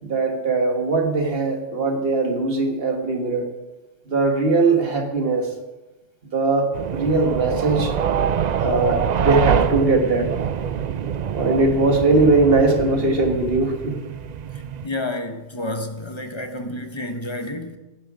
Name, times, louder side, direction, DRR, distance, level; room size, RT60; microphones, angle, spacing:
voice 1, 0.0-3.5 4.1-5.5 6.2-7.9 8.6-10.3 11.3-14.1, right 3 dB, 50° right, 3 dB, 1.8 m, -20 dB
sound 1, 6.7-14.9, right 8 dB, 70° right, 0.4 m, -25 dB
voice 2, 14.8-17.8, left 1 dB, 25° left, 6 dB, 0.9 m, -30 dB
16.5 x 7.6 x 4.9 m, 1.1 s
omnidirectional pair, 1.3 m